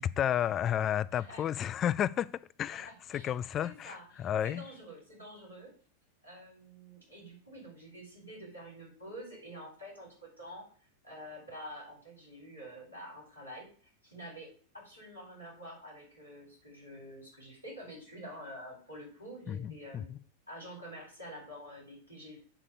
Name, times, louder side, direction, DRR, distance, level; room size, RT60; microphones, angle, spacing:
voice 1, 0.0-2.3 2.6-4.6 19.5-20.2, left 10 dB, 30° left, 0.3 m, -32 dB
voice 2, 1.1-1.4 2.8-3.3 3.6-5.7 6.2-10.6 11.0-13.7 14.0-14.5 14.7-20.1 20.5-22.4, equal, 85° left, 4.2 m, -48 dB
8.1 x 3.7 x 6.7 m
figure-of-eight pair, 90°, 0 cm